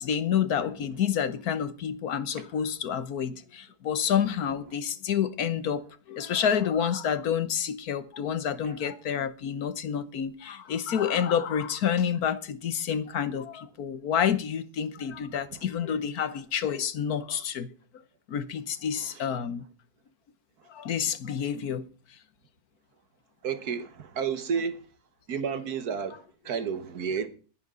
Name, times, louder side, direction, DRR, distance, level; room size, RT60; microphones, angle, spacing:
voice 1, 0.0-17.7 18.3-19.6 20.7-21.9, left 8 dB, 75° left, 1.5 m, -29 dB
voice 2, 23.4-24.8 25.3-27.3, right 6 dB, 75° right, 1.8 m, -31 dB
20.5 x 10.5 x 3.8 m
omnidirectional pair, 1.6 m